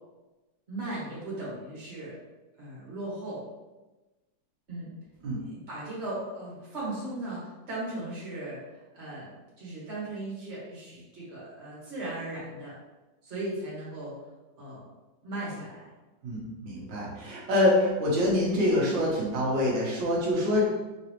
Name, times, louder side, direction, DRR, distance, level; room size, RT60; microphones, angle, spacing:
voice 1, 0.7-2.1 2.6-3.4 4.7-4.9 5.4-12.7 13.2-14.2 14.6-14.8 15.2-15.9, right 2 dB, 40° right, -7 dB, 1.8 m, -37 dB
voice 2, 16.2-20.7, left 1 dB, 90° right, -4 dB, 1.7 m, -25 dB
4.1 x 3.8 x 3.0 m, 1.1 s
omnidirectional pair, 1.9 m